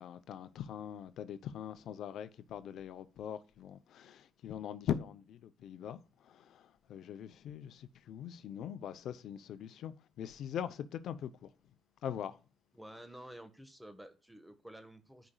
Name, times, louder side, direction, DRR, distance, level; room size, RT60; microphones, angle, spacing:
voice 1, 0.0-11.5 12.0-12.4, left 9 dB, 75° left, 0.6 m, -42 dB
voice 2, 12.7-15.3, right 1 dB, 5° right, 1.3 m, -51 dB
14.0 x 5.0 x 2.3 m
cardioid pair, 90°, 0 cm